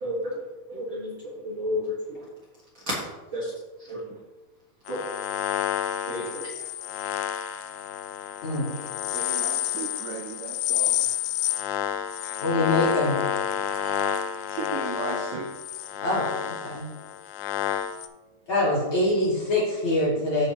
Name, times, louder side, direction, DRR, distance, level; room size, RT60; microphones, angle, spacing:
voice 1, 0.0-0.4 0.7-2.3 2.9-3.5 3.8-4.0 4.9-5.0 6.1-6.5, left 1 dB, 60° right, -5 dB, 1.2 m, -32 dB
sound 1, 4.9-18.1, left 10 dB, 80° left, 2.0 m, -29 dB
voice 2, 9.1-11.0 13.7-14.2 14.5-15.5, right 6 dB, 80° right, 4 dB, 1.9 m, -37 dB
voice 3, 12.4-13.2 16.0-16.8 18.5-20.5, left 1 dB, 35° left, -7 dB, 2.8 m, -24 dB
14.5 x 5.3 x 2.9 m, 1.2 s
omnidirectional pair, 4.3 m